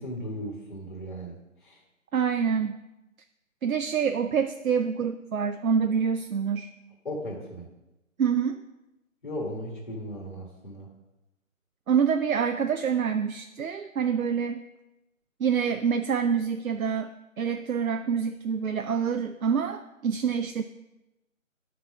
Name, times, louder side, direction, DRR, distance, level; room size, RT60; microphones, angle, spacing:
voice 1, 0.0-1.8 7.0-7.7 9.2-10.9, equal, 40° left, -3 dB, 1.8 m, -36 dB
voice 2, 2.1-2.8 3.6-6.7 8.2-8.6 11.9-14.6 15.4-17.1 17.4-20.6, right 7 dB, 85° right, 7 dB, 0.6 m, -26 dB
11.0 x 4.1 x 6.1 m, 0.97 s
figure-of-eight pair, 175°, 40 cm